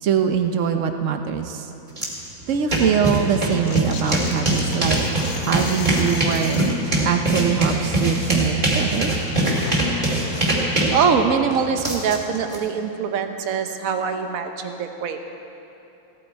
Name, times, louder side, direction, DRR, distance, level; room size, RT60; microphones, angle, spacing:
voice 1, 0.0-1.7 2.5-5.0 5.4-6.6 7.0-9.1, right 8 dB, 75° right, 6 dB, 0.7 m, -23 dB
sound 1, 2.0-2.1 2.4-12.6, right 1 dB, 25° right, 2.2 m, -22 dB
sound 2, 3.6-6.8 7.1-8.6 8.8-11.4, left 5 dB, 55° left, 0.9 m, -37 dB
voice 2, 10.9-15.2, right 6 dB, 55° right, 6 dB, 1.1 m, -23 dB
16.5 x 12.5 x 4.6 m, 2.9 s
omnidirectional pair, 2.1 m